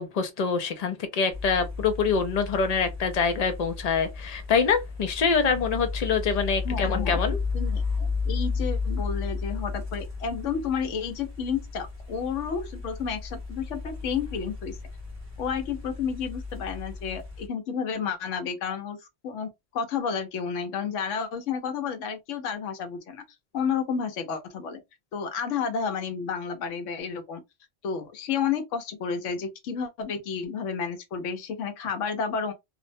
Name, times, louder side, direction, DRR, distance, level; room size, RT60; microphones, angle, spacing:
voice 1, 0.0-7.4, left 5 dB, 75° left, 0.3 m, -25 dB
sound 1, 1.3-17.5, left 4 dB, 15° right, 0.7 m, -33 dB
voice 2, 6.6-14.8 15.4-19.0 19.2-23.2 23.5-24.8 25.1-27.4 27.8-32.5, left 6 dB, 90° left, 1.0 m, -31 dB
2.6 x 2.0 x 2.5 m
omnidirectional pair, 1.2 m